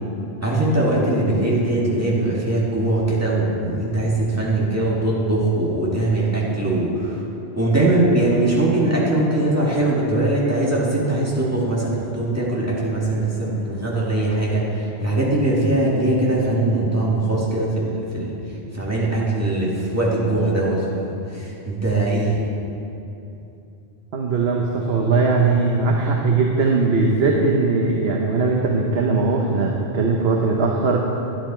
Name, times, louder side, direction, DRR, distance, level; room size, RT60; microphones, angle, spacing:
voice 1, 0.4-7.2 7.6-18.3 18.7-22.4, right 2 dB, 15° right, -6 dB, 2.1 m, -21 dB
voice 2, 24.1-31.0, right 3 dB, 70° right, 0 dB, 1.1 m, -19 dB
11.0 x 11.0 x 4.4 m, 2.8 s
omnidirectional pair, 1.1 m